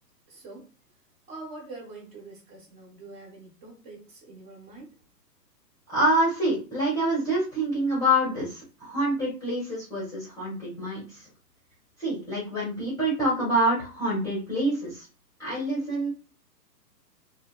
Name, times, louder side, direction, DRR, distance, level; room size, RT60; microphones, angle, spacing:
voice 1, 0.3-0.7 1.3-4.9, right 2 dB, 35° right, 1.3 m, -44 dB
voice 2, 5.9-11.0 12.0-15.0 15.4-16.1, right 1 dB, 5° left, 0.7 m, -26 dB
2.6 x 2.1 x 2.3 m
hypercardioid pair, 135°, 50 cm